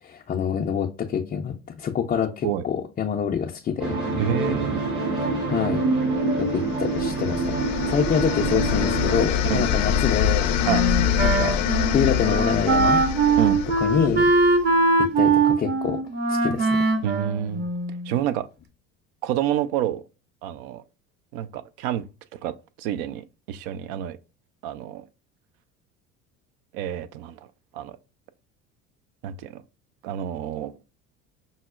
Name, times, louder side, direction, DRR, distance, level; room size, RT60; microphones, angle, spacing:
voice 1, 0.0-3.9 5.5-5.8 6.4-10.5 11.2-13.0 13.8-14.3 15.0-16.0 16.3-16.8, left 7 dB, 20° left, 0.4 m, -26 dB
sound 1, 3.8-9.3, right 3 dB, 85° right, 1.8 m, -26 dB
voice 2, 4.2-4.9 9.4-9.7 10.7-10.9 13.4-13.6 17.0-17.6 18.1-18.5 19.2-20.0 20.4-20.8 21.3-22.0 22.4-22.5 22.8-24.2 24.6-25.0 26.7-27.4 27.7-28.0 29.2-29.6 30.0-30.8, right 10 dB, 60° right, 0.5 m, -28 dB
sound 2, 6.6-14.6, left 8 dB, 70° left, 0.6 m, -25 dB
Wind instrument woodwind instrument, 10.7-18.1, right 3 dB, 25° right, 0.7 m, -22 dB
5.4 x 2.0 x 2.3 m
hypercardioid pair, 70°, 39 cm